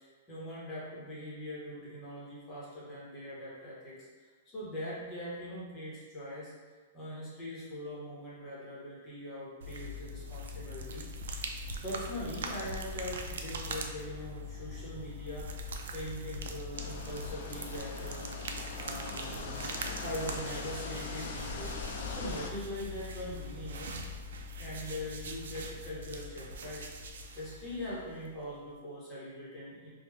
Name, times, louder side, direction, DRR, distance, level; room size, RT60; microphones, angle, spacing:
voice 1, 0.0-6.5 6.9-11.4 11.8-18.3 18.8-19.7 20.0-24.0 24.6-26.8 27.4-29.9, equal, 20° left, -7 dB, 0.7 m, -42 dB
sound 1, 9.6-28.5, left 1 dB, 80° right, 0.3 m, -41 dB
sound 2, 16.7-22.5, left 3 dB, 55° left, 0.4 m, -41 dB
3.1 x 2.0 x 3.5 m, 1.4 s
supercardioid pair, 175°, 0 cm